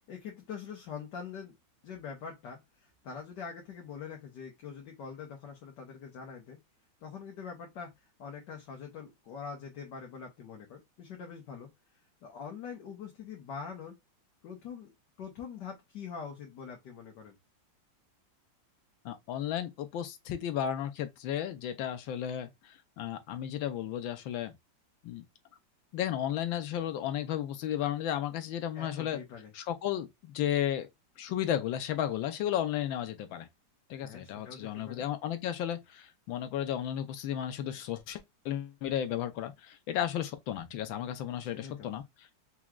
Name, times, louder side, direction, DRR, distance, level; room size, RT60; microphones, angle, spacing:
voice 1, 0.1-1.6 1.8-6.6 7.0-11.7 12.2-14.0 14.4-14.9 15.2-17.3 28.7-29.5 34.0-35.1 41.4-41.9, left 6 dB, 65° left, 1.6 m, -44 dB
voice 2, 19.0-24.5 25.0-25.2 25.9-29.2 29.5-30.9 31.2-33.5 33.9-42.0, left 10 dB, 85° left, 1.5 m, -34 dB
4.7 x 3.1 x 2.3 m
omnidirectional pair, 2.1 m